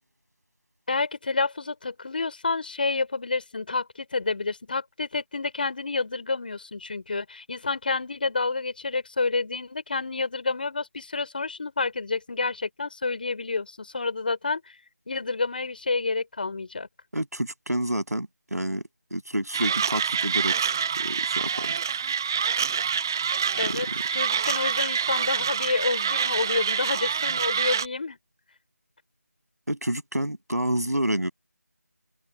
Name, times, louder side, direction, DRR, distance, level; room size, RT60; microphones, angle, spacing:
voice 1, 0.9-14.7 15.1-16.9 23.6-28.2, left 3 dB, 35° left, 4.7 m, -29 dB
voice 2, 17.1-18.8 19.1-21.7 23.6-23.9 29.7-31.3, right 1 dB, 75° right, 7.8 m, -29 dB
Mechanisms, 19.5-27.9, right 7 dB, 15° right, 0.9 m, -26 dB
figure-of-eight pair, 165°, 9 cm